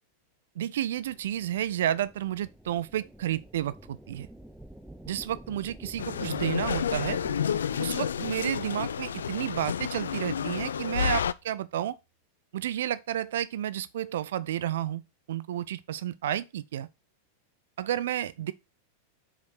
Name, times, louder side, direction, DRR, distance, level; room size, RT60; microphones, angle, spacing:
voice 1, 0.6-4.3 5.1-7.2 7.8-12.0 12.5-15.0 15.3-16.9 17.8-18.5, right 11 dB, 60° right, 0.5 m, -31 dB
sound 1, 1.0-9.0, right 1 dB, 5° right, 0.6 m, -49 dB
sound 2, 6.0-11.3, left 8 dB, 65° left, 0.3 m, -30 dB
Bowed string instrument, 6.8-11.8, right 8 dB, 40° right, 1.7 m, -53 dB
5.2 x 5.0 x 6.3 m
figure-of-eight pair, 90°, 0 cm